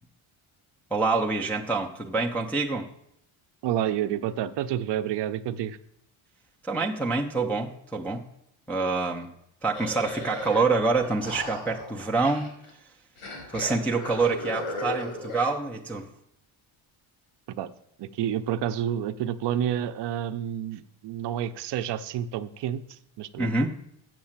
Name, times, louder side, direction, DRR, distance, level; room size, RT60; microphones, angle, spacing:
voice 1, 0.9-2.9 6.7-8.2 8.7-9.3 9.6-12.5 13.5-16.1 23.4-23.7, right 3 dB, 5° left, -1 dB, 0.3 m, -26 dB
voice 2, 3.6-5.8 17.5-17.7 18.0-23.7, right 10 dB, 55° right, 11 dB, 0.5 m, -29 dB
sound 1, 9.7-10.6 10.9-12.7 13.2-15.5, left 2 dB, 90° left, 4.2 m, -36 dB
7.6 x 7.1 x 7.2 m, 0.77 s
cardioid pair, 180°, 50 cm